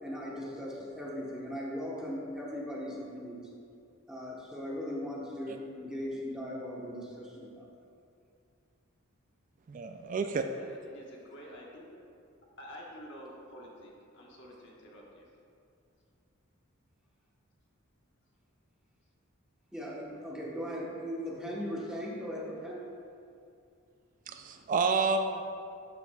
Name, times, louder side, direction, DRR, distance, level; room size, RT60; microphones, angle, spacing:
voice 1, 0.0-3.4 4.1-7.6 19.7-22.9, equal, 5° right, -5 dB, 1.1 m, -38 dB
voice 2, 9.7-10.5 24.3-25.4, right 4 dB, 40° right, 7 dB, 0.3 m, -30 dB
voice 3, 10.5-11.9 12.6-15.3, equal, 60° left, -2 dB, 1.3 m, -49 dB
13.0 x 5.8 x 2.3 m, 2.4 s
head